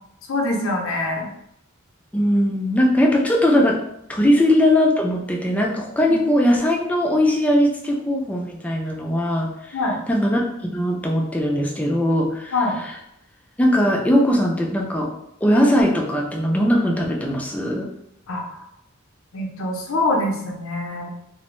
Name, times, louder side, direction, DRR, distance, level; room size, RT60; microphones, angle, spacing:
voice 1, 0.3-1.3 9.7-10.0 12.5-12.8 18.3-18.6 19.3-21.1, left 2 dB, 70° left, 1 dB, 0.6 m, -24 dB
voice 2, 2.1-3.8 4.1-9.5 10.1-10.4 10.7-12.5 13.6-15.1 15.4-17.9, left 1 dB, 5° left, -1 dB, 0.3 m, -19 dB
2.4 x 2.0 x 3.0 m, 0.78 s
head